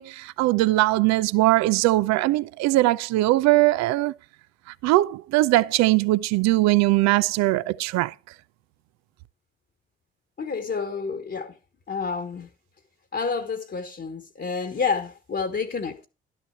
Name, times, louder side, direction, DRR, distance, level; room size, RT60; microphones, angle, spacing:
voice 1, 0.0-4.1 4.8-8.1, right 18 dB, 60° right, 0.5 m, -21 dB
voice 2, 10.4-11.6 11.9-12.5 13.1-16.1, left 5 dB, 35° left, 1.3 m, -29 dB
12.0 x 6.7 x 4.5 m
figure-of-eight pair, 45°, 30 cm